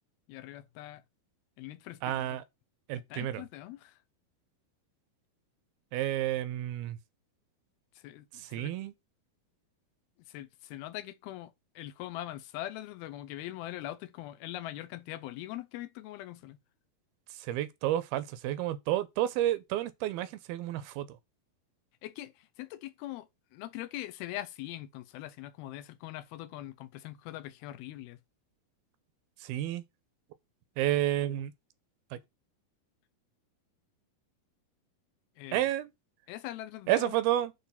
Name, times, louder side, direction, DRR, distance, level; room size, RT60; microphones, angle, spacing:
voice 1, 0.3-1.0 1.6-2.4 3.1-4.0 8.0-8.7 10.3-16.6 22.0-28.2 35.4-35.7 36.3-37.1, left 14 dB, 80° left, 2.6 m, -42 dB
voice 2, 2.0-2.4 2.9-3.4 5.9-7.0 8.3-8.9 17.3-21.1 29.4-29.8 30.8-31.5 32.1-32.2 35.5-35.9 36.9-37.5, right 13 dB, 85° right, 2.5 m, -30 dB
8.4 x 3.4 x 5.6 m
omnidirectional pair, 4.4 m